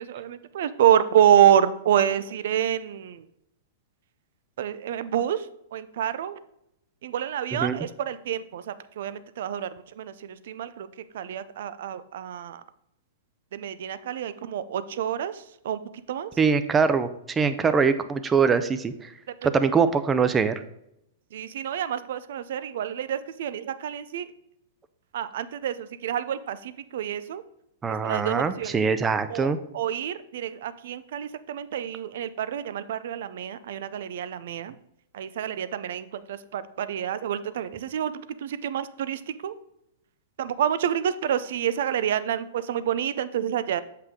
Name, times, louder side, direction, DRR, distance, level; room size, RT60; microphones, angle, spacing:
voice 1, 0.0-3.2 4.6-5.5 5.7-6.4 7.0-9.7 10.0-10.9 11.1-12.6 13.5-15.8 16.1-16.3 19.4-19.5 21.3-24.3 25.1-27.4 28.0-28.8 29.3-34.7 35.1-39.5 40.4-43.8, right 10 dB, 65° right, 14 dB, 0.5 m, -27 dB
voice 2, 16.4-19.1 19.4-20.6 27.8-29.6, right 5 dB, 20° right, 11 dB, 0.6 m, -23 dB
7.9 x 5.6 x 3.7 m, 0.80 s
hypercardioid pair, 115°, 0 cm